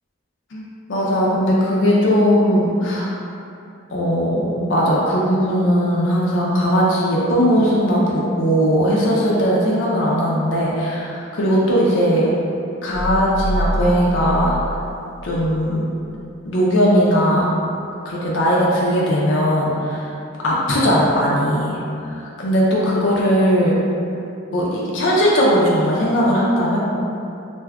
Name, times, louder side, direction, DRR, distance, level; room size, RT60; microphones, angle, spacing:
voice 1, 0.5-3.2 3.9-12.3 12.8-14.6 15.2-15.8 16.5-17.5 18.1-20.1 20.4-23.8 24.5-26.8, equal, 60° left, -5 dB, 0.5 m, -18 dB
sound 1, 12.9-15.6, equal, ahead, 0.6 m, -26 dB
2.6 x 2.2 x 3.4 m, 2.6 s
head